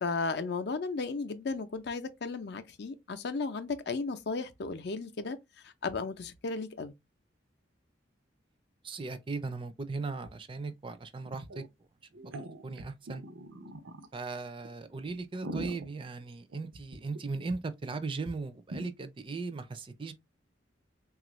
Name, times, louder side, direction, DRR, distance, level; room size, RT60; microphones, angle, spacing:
voice 1, 0.0-5.4 5.6-6.9, left 4 dB, 60° left, 0.5 m, -35 dB
voice 2, 8.8-11.6 12.6-13.2 14.1-20.1, right 3 dB, 25° right, 0.4 m, -38 dB
sound 1, 10.3-10.4 10.6-10.7 11.3-11.7 12.1-14.1 14.6-14.7 15.2-17.2 17.5-17.6 17.9-18.0 18.2-18.3 18.7-18.9, right 1 dB, 90° right, 0.6 m, -42 dB
3.3 x 2.4 x 3.0 m
head